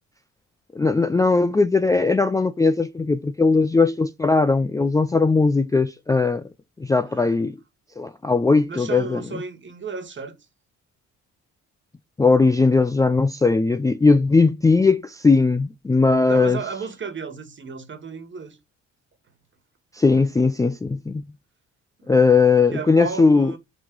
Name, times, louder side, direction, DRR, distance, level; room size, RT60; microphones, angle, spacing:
voice 1, 0.8-6.4 6.8-7.6 8.0-9.2 12.2-16.6 19.9-21.2 22.1-23.5, left 4 dB, 10° left, 0.4 m, -19 dB
voice 2, 8.7-10.4 16.3-18.6 22.0-22.2 22.7-23.6, right 5 dB, 40° right, 1.6 m, -33 dB
6.0 x 3.1 x 5.3 m
cardioid pair, 90°, 30 cm